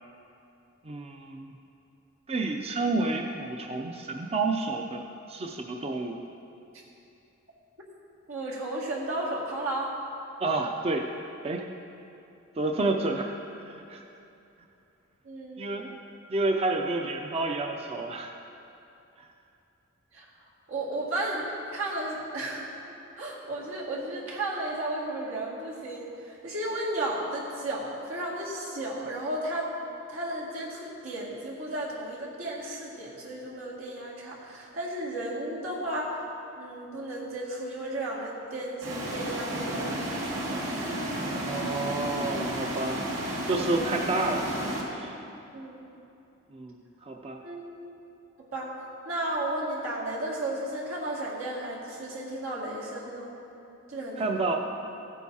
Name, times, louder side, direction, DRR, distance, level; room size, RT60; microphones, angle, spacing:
voice 1, 0.8-1.5 2.3-5.0 5.3-6.2 10.4-11.1 11.4-11.6 12.6-13.4 13.6-14.0 15.6-16.0 16.3-18.3 19.2-19.3 41.5-43.0 43.5-45.2 46.5-47.4 54.2-54.6, right 2 dB, 30° right, 2 dB, 0.4 m, -30 dB
voice 2, 8.3-9.9 15.2-15.7 20.1-20.3 20.7-21.4 21.7-22.6 23.2-29.7 30.1-36.2 36.6-40.6 41.2-41.4 45.5-45.9 47.4-47.6 48.4-48.7 49.1-53.3 53.9-54.3, right 1 dB, 90° right, -5 dB, 2.1 m, -34 dB
sound 1, 38.8-44.8, right 1 dB, 70° right, 2.2 m, -32 dB
15.0 x 9.2 x 2.8 m, 2.8 s
head